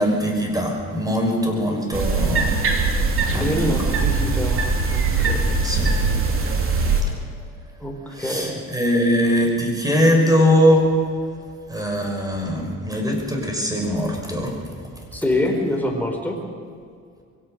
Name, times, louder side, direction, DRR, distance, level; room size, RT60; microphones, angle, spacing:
voice 1, 0.0-2.5 3.3-3.9 5.6-6.0 8.1-10.9 11.7-14.5, equal, 10° right, 1 dB, 6.2 m, -21 dB
sound 1, 1.9-7.0, right 4 dB, 40° right, 3.4 m, -21 dB
voice 2, 3.3-5.6 7.8-8.6 15.1-16.4, left 1 dB, 5° left, 1 dB, 4.6 m, -26 dB
23.0 x 17.5 x 6.8 m, 2.2 s
cardioid pair, 95°, 32 cm